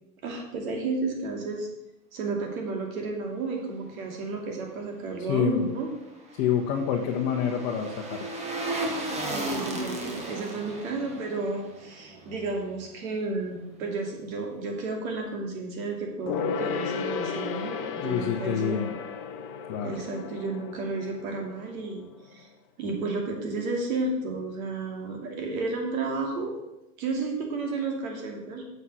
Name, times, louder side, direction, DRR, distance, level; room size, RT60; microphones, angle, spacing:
voice 1, 0.2-1.7 2.1-5.9 9.3-18.8 19.8-22.5 22.8-26.6 27.0-28.7, right 3 dB, 60° right, 2 dB, 2.6 m, -32 dB
voice 2, 5.3-5.7 6.4-8.3 18.0-18.9 19.7-19.9, left 8 dB, 40° left, 1 dB, 1.0 m, -27 dB
sound 1, 5.9-13.1 13.4-13.5, right 1 dB, 15° right, 1.0 m, -35 dB
Gong, 16.3-22.2 22.4-22.5, left 6 dB, 20° left, 0.4 m, -34 dB
6.9 x 5.6 x 6.2 m, 0.93 s
hypercardioid pair, 130°, 47 cm